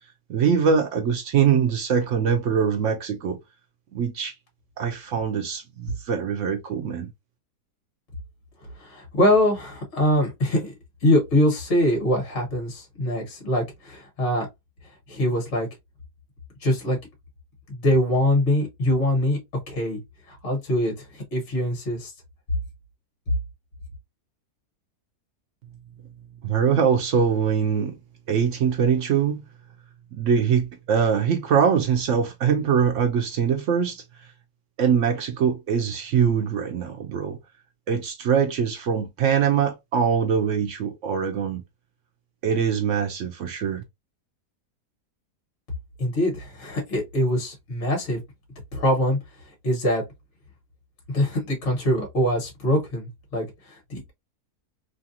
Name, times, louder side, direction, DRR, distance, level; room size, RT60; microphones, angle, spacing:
voice 1, 0.3-3.4 3.9-4.3 4.8-7.1 26.4-28.0 28.3-29.4 30.1-34.0 34.8-37.4 37.9-41.6 42.4-43.8, right 7 dB, 65° right, 0.8 m, -23 dB
voice 2, 8.8-10.7 11.0-14.5 15.1-15.7 16.6-17.0 17.7-19.4 19.7-20.0 20.3-22.1 46.0-48.2 48.7-49.2 49.6-50.0 51.1-54.1, left 1 dB, 50° left, 1.6 m, -23 dB
3.2 x 2.5 x 2.6 m
omnidirectional pair, 1.7 m